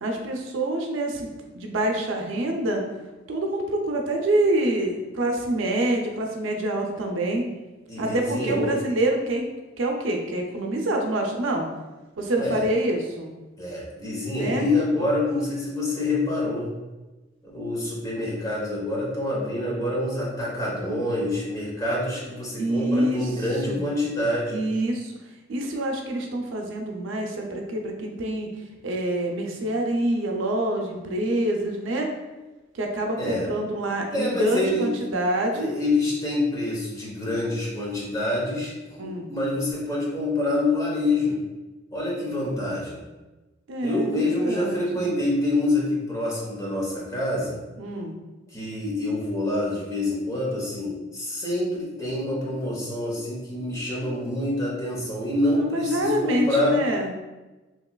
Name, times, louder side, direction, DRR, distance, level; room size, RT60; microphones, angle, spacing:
voice 1, 0.0-2.8 3.3-7.4 8.0-9.5 9.8-11.7 12.2-13.3 14.3-14.7 22.6-23.3 23.7-23.9 24.5-25.2 25.5-28.5 28.8-32.1 32.7-35.7 39.0-39.3 43.7-45.1 47.8-48.1 55.5-57.1, right 1 dB, 85° right, 2 dB, 0.5 m, -26 dB
voice 2, 7.9-8.7 12.4-12.6 13.6-16.7 17.5-24.6 33.2-33.5 34.1-34.9 35.5-38.7 39.0-41.4 41.9-43.0 43.8-47.6 48.5-56.8, left 2 dB, 20° left, -5 dB, 0.8 m, -26 dB
3.0 x 2.8 x 2.2 m, 1.1 s
head